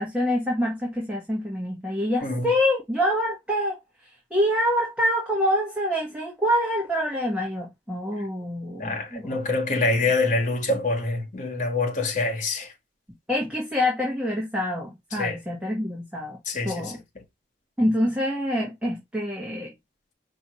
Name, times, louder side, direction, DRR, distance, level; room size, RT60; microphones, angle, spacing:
voice 1, 0.0-3.8 4.3-9.4 13.3-16.4 16.6-17.0 17.8-19.7, equal, 5° right, 1.5 m, -26 dB
voice 2, 2.2-2.5 8.8-12.7 15.1-15.4 16.5-16.9, left 3 dB, 45° left, 1.5 m, -25 dB
5.5 x 3.0 x 3.0 m
head